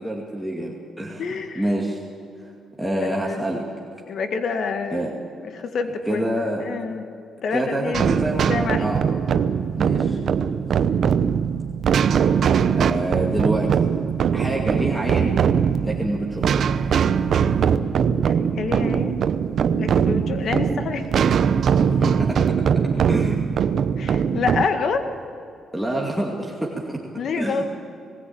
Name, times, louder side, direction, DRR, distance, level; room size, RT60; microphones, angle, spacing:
voice 1, 0.0-1.3 1.5-2.0 2.8-3.7 4.9-5.1 6.1-6.7 7.5-8.5 8.8-9.0 9.8-10.2 12.8-13.8 14.3-15.4 15.8-16.7 21.9-22.6 23.0-23.4 25.7-27.0 27.4-27.6, right 1 dB, 5° right, -2 dB, 2.4 m, -26 dB
voice 2, 1.2-1.6 3.2-3.3 4.1-5.1 5.6-6.3 6.6-7.1 7.4-8.0 8.5-8.8 9.3-9.5 18.2-19.2 19.7-21.1 24.0-25.1 27.2-27.6, left 5 dB, 60° left, 7 dB, 1.8 m, -27 dB
sound 1, 7.9-24.7, right 7 dB, 60° right, 0.8 m, -21 dB
20.0 x 15.5 x 8.8 m, 2.5 s
cardioid pair, 90°, 0 cm